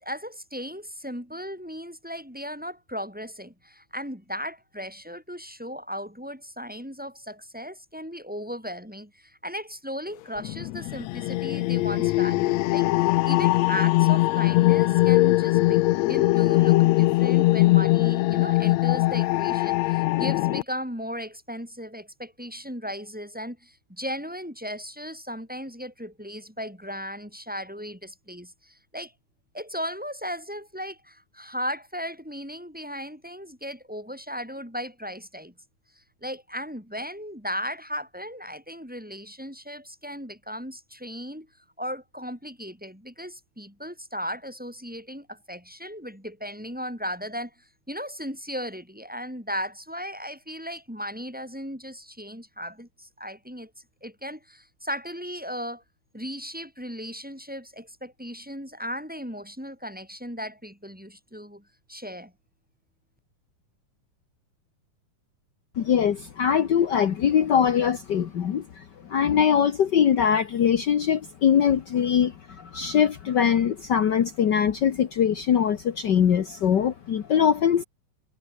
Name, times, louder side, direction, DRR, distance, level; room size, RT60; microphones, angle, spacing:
voice 1, 0.0-29.1 29.5-35.5 36.0-41.5 41.8-53.7 54.0-55.8 56.1-62.3, equal, ahead, 5.1 m, -36 dB
sound 1, 10.4-20.6, left 19 dB, 90° left, 1.5 m, -21 dB
voice 2, 65.8-77.8, left 8 dB, 60° left, 1.1 m, -22 dB
omnidirectional pair, 3.7 m